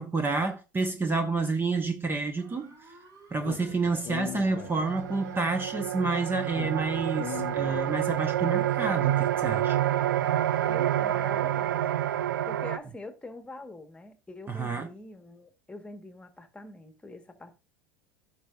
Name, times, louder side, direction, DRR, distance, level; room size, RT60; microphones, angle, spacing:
voice 1, 0.0-2.7 3.3-9.8 14.5-14.9, right 3 dB, 20° right, 1.1 m, -29 dB
sound 1, 2.4-9.6, right 3 dB, 35° right, 3.4 m, -53 dB
Speech, 3.4-5.2 6.5-8.3, left 14 dB, 50° left, 0.7 m, -40 dB
sound 2, 3.8-3.9 4.3-12.8, right 12 dB, 75° right, 0.4 m, -28 dB
voice 2, 10.7-11.8 12.5-17.5, left 2 dB, 10° left, 1.5 m, -44 dB
16.0 x 5.6 x 2.6 m
figure-of-eight pair, 75°, 11 cm